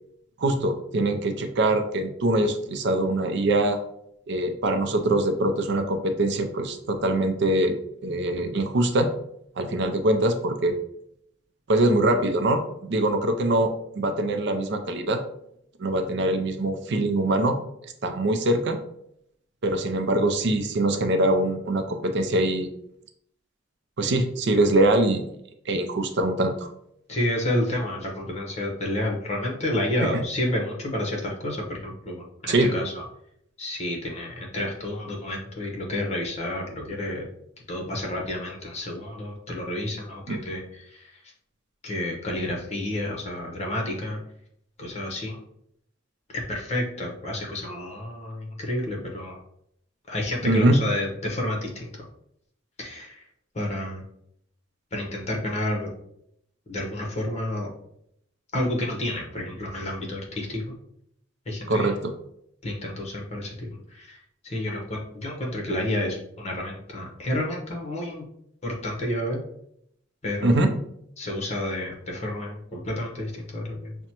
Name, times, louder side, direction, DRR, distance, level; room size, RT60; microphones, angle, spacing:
voice 1, 0.4-3.8 4.3-9.1 9.6-10.8 11.7-15.2 15.8-17.6 17.8-18.8 19.6-22.7 24.0-25.2 25.7-26.7 30.1-30.2 32.5-32.7 40.3-40.4 50.4-50.8 61.7-61.9 70.4-70.7, right 1 dB, 60° right, 7 dB, 0.5 m, -23 dB
voice 2, 27.1-33.0 33.6-37.3 37.7-41.3 41.8-44.2 44.8-45.4 46.3-49.4 50.1-52.0 52.8-53.2 53.5-54.0 54.9-55.9 56.7-57.7 58.5-60.7 61.5-62.0 62.6-68.2 68.6-69.4 70.2-70.7 71.2-74.0, left 1 dB, 35° left, 0 dB, 0.9 m, -30 dB
5.9 x 2.1 x 2.8 m, 0.74 s
head